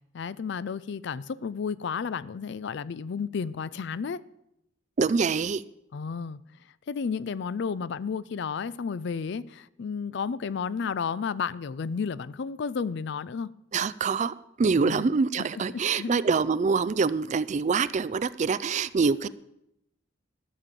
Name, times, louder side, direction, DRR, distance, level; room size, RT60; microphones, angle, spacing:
voice 1, 0.1-4.2 5.9-6.4 6.9-13.5 14.8-15.1 15.5-16.1, left 6 dB, 60° left, 0.4 m, -32 dB
voice 2, 5.0-5.6 13.7-19.3, right 5 dB, 35° right, 0.4 m, -25 dB
12.5 x 6.9 x 7.4 m
head